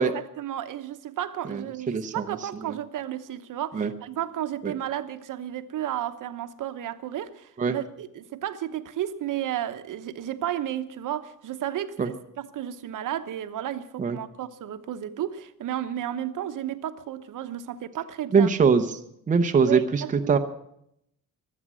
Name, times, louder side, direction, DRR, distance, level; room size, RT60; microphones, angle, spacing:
voice 1, 0.0-18.5 19.6-20.4, right 11 dB, 65° right, 1.0 m, -33 dB
voice 2, 1.9-2.2 3.7-3.9 4.6-4.7 7.6-7.8 12.0-12.1 14.0-14.2 18.3-18.8 19.3-20.4, right 5 dB, 25° right, 0.7 m, -21 dB
23.5 x 8.7 x 6.2 m
cardioid pair, 180°, 34 cm